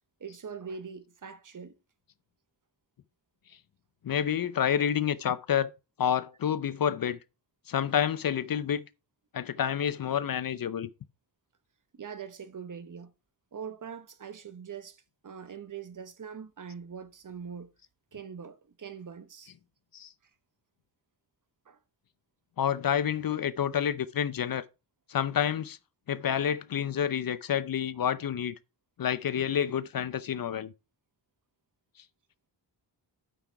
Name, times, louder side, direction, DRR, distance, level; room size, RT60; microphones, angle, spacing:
voice 1, 0.2-1.8 11.9-13.1 13.5-17.7 18.1-19.5 21.7-21.8, right 6 dB, 45° right, 1.0 m, -42 dB
voice 2, 4.0-5.7 6.0-7.2 7.7-8.8 9.3-10.9 19.9-20.1 22.6-24.6 25.1-25.8 26.1-28.5 29.0-30.7, left 9 dB, 50° left, 0.6 m, -28 dB
8.4 x 6.0 x 4.5 m
wide cardioid pair, 130°, 44 cm